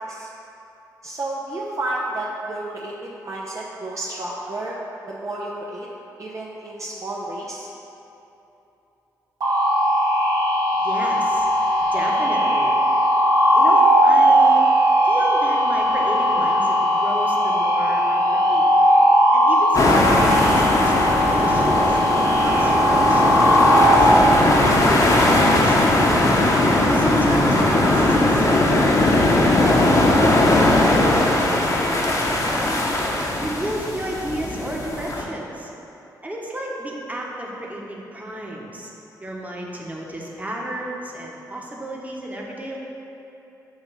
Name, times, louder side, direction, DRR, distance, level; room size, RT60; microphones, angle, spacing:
voice 1, 1.0-4.8 5.1-5.9 6.2-7.7, right 2 dB, 45° right, -4 dB, 0.7 m, -31 dB
sound 1, 9.4-24.0, equal, 60° right, 1.3 m, -18 dB
voice 2, 10.8-11.5 11.9-12.8 13.5-14.6 15.0-18.7 19.3-22.0 22.4-26.0 26.8-28.8 30.7-32.8 33.4-35.7 36.2-38.9 39.2-42.8, right 1 dB, 20° right, -2 dB, 1.2 m, -32 dB
sound 2, 19.7-35.2, left 1 dB, 45° left, 1.0 m, -19 dB
7.6 x 2.9 x 5.8 m, 3.0 s
supercardioid pair, 55°, 8 cm